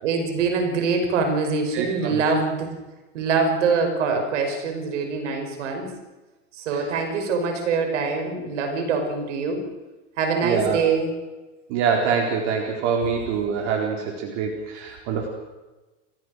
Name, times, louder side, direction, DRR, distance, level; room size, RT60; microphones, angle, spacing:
voice 1, 0.0-2.7 3.1-5.9 6.6-9.6 10.2-11.1, right 4 dB, 80° right, 5 dB, 5.7 m, -24 dB
voice 2, 1.7-2.2 6.7-7.0 10.4-10.8 11.7-15.3, right 6 dB, 60° right, 0 dB, 4.3 m, -25 dB
30.0 x 15.5 x 6.6 m, 1.1 s
hypercardioid pair, 95°, 36 cm